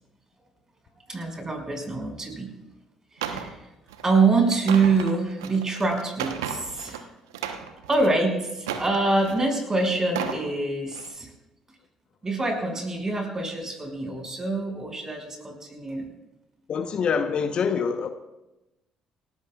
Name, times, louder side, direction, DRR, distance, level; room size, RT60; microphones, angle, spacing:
voice 1, 1.1-2.5 3.3-3.6 4.0-7.0 7.9-11.3 12.2-16.1, right 3 dB, 25° right, 5.9 m, -25 dB
sound 1, 3.2-3.5 3.9-4.1 4.5-7.0 7.3-8.1 8.6-9.4 10.0-10.4 10.9-11.1, right 8 dB, 80° right, 1.0 m, -34 dB
voice 2, 16.7-18.1, left 6 dB, 50° left, 1.0 m, -25 dB
29.0 x 14.0 x 2.4 m
figure-of-eight pair, 50°, 2 cm